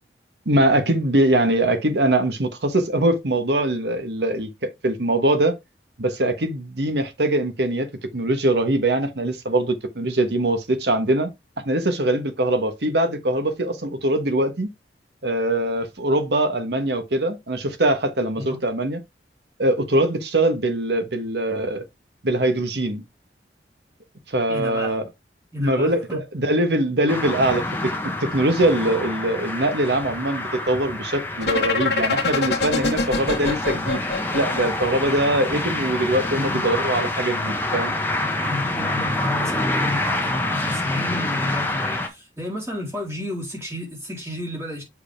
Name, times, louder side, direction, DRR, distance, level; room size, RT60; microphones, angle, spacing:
voice 1, 0.4-5.5 6.0-11.3 11.6-14.7 15.2-19.0 19.6-21.8 22.2-23.0 24.3-25.1 25.6-27.9 28.2-34.0 34.3-38.0, right 1 dB, 70° right, 1.3 m, -22 dB
voice 2, 24.5-25.0 25.5-26.2 36.3-36.6 38.4-44.8, left 1 dB, 15° right, 3.4 m, -31 dB
sound 1, 27.1-42.1, left 2 dB, 10° left, 1.1 m, -27 dB
sound 2, 31.4-35.3, left 4 dB, 70° left, 1.1 m, -24 dB
7.1 x 4.8 x 3.4 m
head